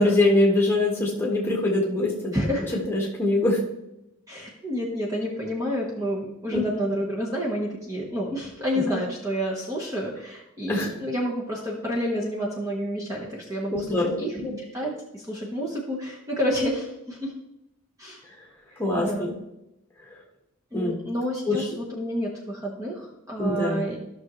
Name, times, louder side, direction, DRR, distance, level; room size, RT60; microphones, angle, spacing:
voice 1, 0.0-2.5 2.9-3.6 6.5-6.6 8.7-9.0 10.7-10.9 13.7-14.6 18.8-19.3 20.7-21.0 21.5-21.7 23.4-23.9, left 2 dB, 10° left, -2 dB, 1.5 m, -23 dB
voice 2, 2.3-2.8 4.3-14.4 14.7-17.3 18.0-18.2 18.7-19.3 20.7-24.0, equal, 15° right, -3 dB, 1.1 m, -29 dB
14.0 x 6.1 x 3.1 m, 0.90 s
head